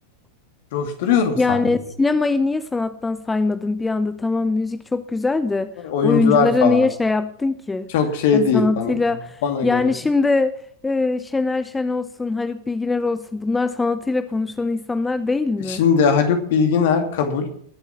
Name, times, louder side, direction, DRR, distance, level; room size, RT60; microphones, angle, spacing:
voice 1, 0.7-1.6 5.8-6.9 7.9-9.0 9.4-9.9 15.7-17.5, left 6 dB, 55° left, 5 dB, 2.5 m, -19 dB
voice 2, 1.4-5.7 6.0-7.9 8.3-15.8, left 3 dB, 10° left, 12 dB, 0.6 m, -22 dB
20.5 x 7.2 x 5.9 m, 0.64 s
figure-of-eight pair, 90°, 0 cm